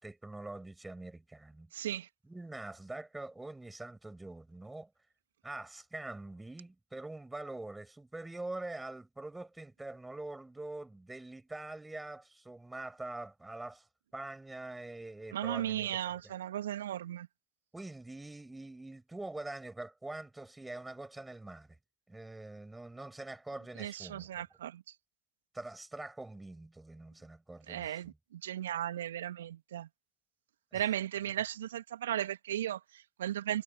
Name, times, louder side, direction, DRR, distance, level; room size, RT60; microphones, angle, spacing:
voice 1, 0.0-1.7 2.3-4.9 5.4-13.9 14.1-16.3 17.7-21.8 22.1-24.4 25.5-28.1 30.7-30.9, right 2 dB, 10° right, 7.6 m, -44 dB
voice 2, 1.7-2.1 15.3-17.3 23.8-24.8 27.7-29.9 30.7-33.6, right 11 dB, 75° right, 2.4 m, -36 dB
figure-of-eight pair, 60°, 0 cm